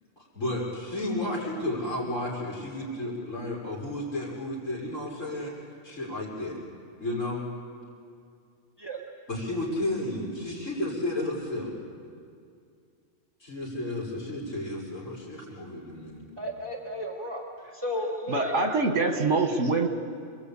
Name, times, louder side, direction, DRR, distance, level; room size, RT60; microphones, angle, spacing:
voice 1, 0.3-5.5 5.8-6.6 7.0-7.4 9.3-11.7 13.4-16.2, left 1 dB, 80° left, -3 dB, 5.9 m, -32 dB
voice 2, 16.4-17.4 17.7-18.5, equal, 20° right, -1 dB, 1.8 m, -33 dB
voice 3, 18.3-19.9, right 3 dB, 70° right, 5 dB, 2.2 m, -24 dB
27.0 x 22.5 x 8.5 m, 2.3 s
omnidirectional pair, 1.3 m